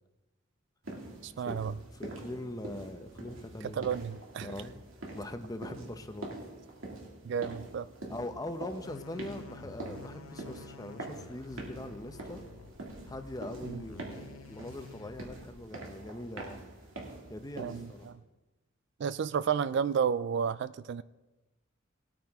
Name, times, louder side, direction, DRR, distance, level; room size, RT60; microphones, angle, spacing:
sound 1, 0.8-18.1, right 2 dB, 75° right, 2.1 m, -45 dB
voice 1, 1.2-1.8 3.7-4.5 7.2-7.9 13.6-13.8 17.6-18.1 19.0-21.0, right 7 dB, 55° right, 16 dB, 0.3 m, -32 dB
voice 2, 2.0-3.9 4.4-4.8 5.1-6.4 8.1-12.4 13.1-16.6 17.3-18.1, left 1 dB, 20° left, 8 dB, 0.7 m, -42 dB
sound 2, 8.8-15.6, left 4 dB, 85° left, 0.7 m, -51 dB
19.0 x 8.9 x 3.5 m, 1.1 s
head